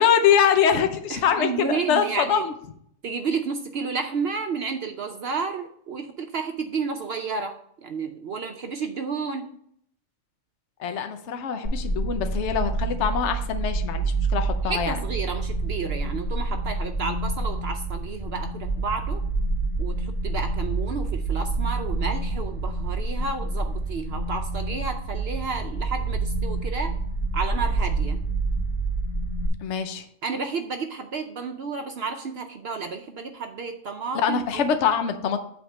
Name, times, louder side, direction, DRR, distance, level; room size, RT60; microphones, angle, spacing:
voice 1, 0.0-2.5 10.8-14.9 29.6-30.0 34.2-35.4, left 7 dB, 65° left, 7 dB, 1.0 m, -23 dB
voice 2, 1.1-2.4 3.0-7.6 7.8-9.5 14.6-19.2 19.8-26.9 27.3-28.2 30.2-34.6, right 5 dB, 60° right, 6 dB, 0.7 m, -31 dB
sound 1, 11.6-29.5, right 3 dB, 50° left, 1.7 m, -28 dB
8.5 x 3.6 x 6.5 m, 0.67 s
omnidirectional pair, 1.3 m